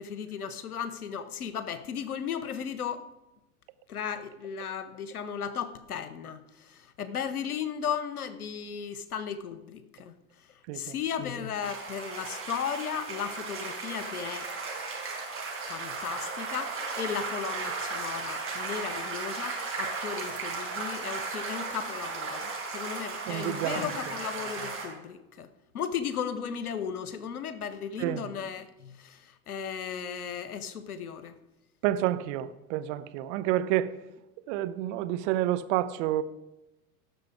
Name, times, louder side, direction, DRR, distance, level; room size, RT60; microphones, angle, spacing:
voice 1, 0.0-3.1 3.9-10.1 10.7-14.5 15.7-25.5 25.7-31.3, left 7 dB, 80° left, 1.0 m, -35 dB
sound 1, 11.6-24.9, right 4 dB, 30° right, 4.5 m, -35 dB
voice 2, 23.3-23.9 28.0-28.3 31.8-33.9 34.5-36.2, right 13 dB, 55° right, 0.9 m, -29 dB
17.5 x 6.7 x 4.7 m
figure-of-eight pair, 75°, 44 cm